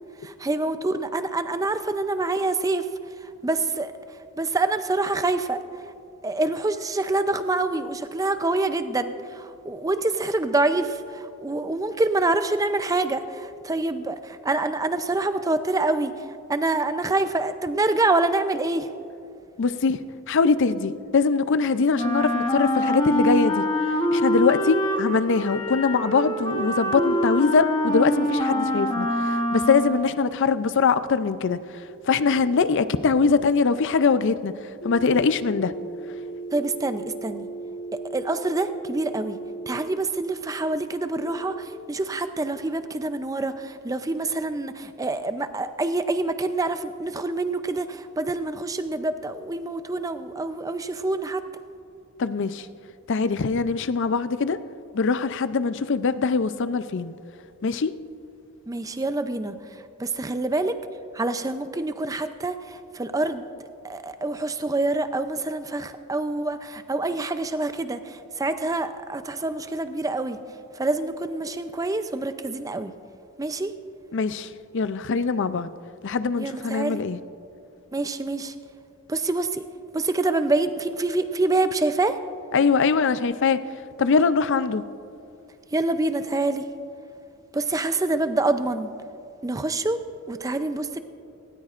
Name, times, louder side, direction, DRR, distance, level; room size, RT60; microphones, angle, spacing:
voice 1, 0.2-2.9 3.4-3.9 4.4-5.6 6.2-16.1 16.5-18.9 36.5-37.5 37.9-39.4 39.7-51.4 58.7-59.5 60.0-60.7 61.1-63.4 63.8-70.4 70.8-72.9 73.4-73.7 76.4-77.0 77.9-78.5 79.1-79.6 79.9-82.2 85.7-86.6 87.5-88.9 89.4-90.0 90.3-91.0, right 2 dB, 15° right, 10 dB, 0.5 m, -26 dB
voice 2, 19.6-20.0 20.3-23.7 24.1-31.6 32.1-34.5 34.8-35.7 52.2-52.7 53.1-54.6 54.9-57.1 57.6-57.9 74.1-74.5 74.7-75.7 76.0-77.2 82.5-83.6 84.0-84.8, left 4 dB, 55° left, 13 dB, 0.5 m, -22 dB
Wind instrument woodwind instrument, 21.9-30.1, equal, 20° left, 0.9 m, -25 dB
sound 1, 31.8-33.8 34.8-39.8 41.1-41.6, right 3 dB, 80° left, 1.2 m, -37 dB
18.5 x 17.5 x 2.5 m, 2.6 s
head